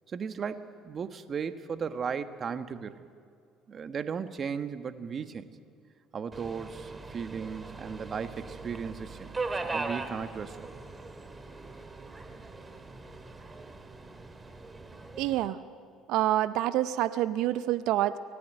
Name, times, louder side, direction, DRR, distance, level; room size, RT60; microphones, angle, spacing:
voice 1, 0.1-3.0 3.7-5.5 6.1-9.3 9.6-10.7, right 6 dB, 45° right, 10 dB, 1.4 m, -36 dB
Subway metro underground, 6.3-15.5, right 3 dB, 25° right, 2.3 m, -40 dB
voice 2, 15.2-15.6 16.1-18.2, right 13 dB, 70° right, 14 dB, 0.6 m, -27 dB
24.5 x 18.5 x 9.1 m, 2.2 s
hypercardioid pair, 65°, 0 cm